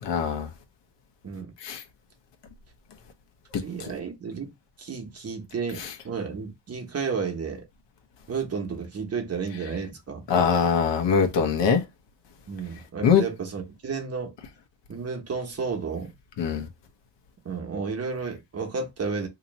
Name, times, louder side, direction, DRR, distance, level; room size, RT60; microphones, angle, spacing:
voice 1, 0.0-0.5 1.6-1.8 5.8-5.9 10.3-11.8 13.0-13.2 16.4-16.7, left 6 dB, 75° left, 1.1 m, -22 dB
voice 2, 3.5-4.5 4.8-7.6 8.3-10.3 12.5-14.3 14.9-16.1 17.4-19.3, right 5 dB, 35° right, 1.0 m, -32 dB
3.0 x 2.8 x 4.1 m
cardioid pair, 130°, 43 cm